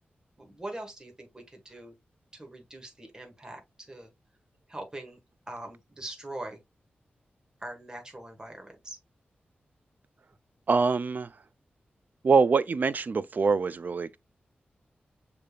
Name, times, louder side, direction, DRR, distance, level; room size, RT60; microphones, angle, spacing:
voice 1, 0.4-1.9 2.3-4.1 4.7-5.2 5.5-6.6 7.6-9.0, right 1 dB, 20° right, 1.4 m, -42 dB
voice 2, 10.7-11.3 12.2-14.2, right 4 dB, 50° right, 0.4 m, -24 dB
6.5 x 3.4 x 2.3 m
wide cardioid pair, 105°, 4 cm